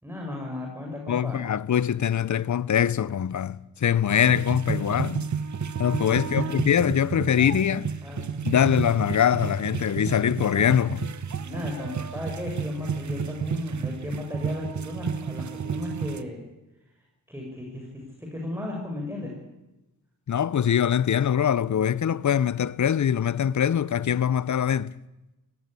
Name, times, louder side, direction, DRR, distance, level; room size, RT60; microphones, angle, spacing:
voice 1, 0.0-1.4 6.1-6.6 8.0-8.3 11.4-16.4 17.3-19.3, left 2 dB, 5° right, 5.5 m, -35 dB
voice 2, 1.1-5.3 5.8-7.9 8.4-11.1 20.3-24.9, left 9 dB, 55° left, 0.7 m, -23 dB
sound 1, 4.1-16.2, right 6 dB, 55° right, 1.1 m, -32 dB
17.5 x 15.0 x 9.8 m
cardioid pair, 65°, 34 cm